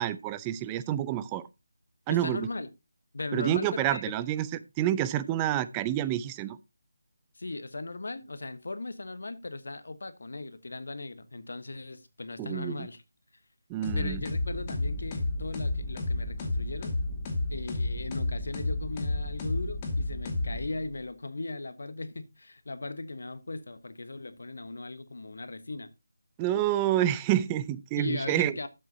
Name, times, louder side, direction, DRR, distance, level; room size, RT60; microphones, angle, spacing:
voice 1, 0.0-1.5 2.1-2.5 3.3-4.5 4.8-6.6 12.4-12.9 13.7-14.2 26.4-28.5, right 12 dB, 15° right, 0.5 m, -28 dB
voice 2, 2.1-2.7 3.1-4.0 7.4-13.0 13.9-17.0 17.5-25.9 28.0-28.7, left 2 dB, 70° left, 1.2 m, -38 dB
sound 1, 13.8-21.0, left 2 dB, 20° left, 1.8 m, -31 dB
12.0 x 7.8 x 2.8 m
figure-of-eight pair, 165°, 0 cm